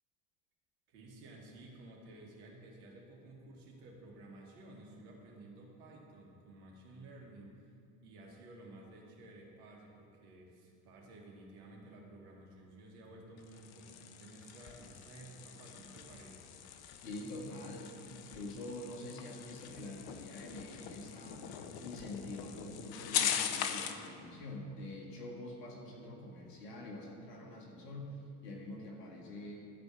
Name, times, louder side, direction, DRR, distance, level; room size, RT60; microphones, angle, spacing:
voice 1, 0.9-7.6 8.0-16.5, right 2 dB, 70° right, -1 dB, 2.5 m, -54 dB
sound 1, 13.4-24.1, left 9 dB, 50° left, 1.0 m, -41 dB
voice 2, 17.0-21.4 21.8-29.6, left 1 dB, 85° left, -1 dB, 2.1 m, -45 dB
13.0 x 5.3 x 7.7 m, 2.4 s
hypercardioid pair, 70°, 47 cm